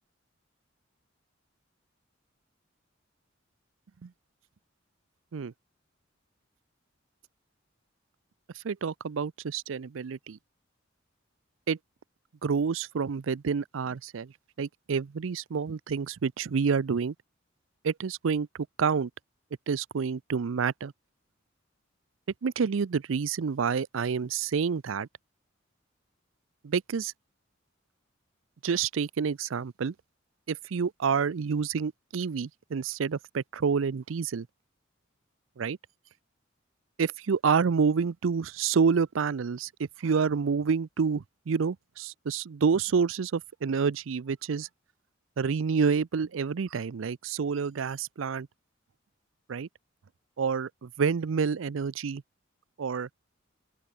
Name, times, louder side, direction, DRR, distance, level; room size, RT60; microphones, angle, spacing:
voice 1, 8.6-10.4 11.7-11.8 12.4-14.3 14.6-17.1 17.8-18.5 18.8-19.1 19.7-20.9 22.4-25.1 26.6-27.1 28.6-29.9 30.5-34.5 35.6-35.8 37.0-44.7 45.4-48.5 49.5-49.7 50.4-52.2 52.8-53.1, right 6 dB, 80° right, 0.5 m, -28 dB
open air
head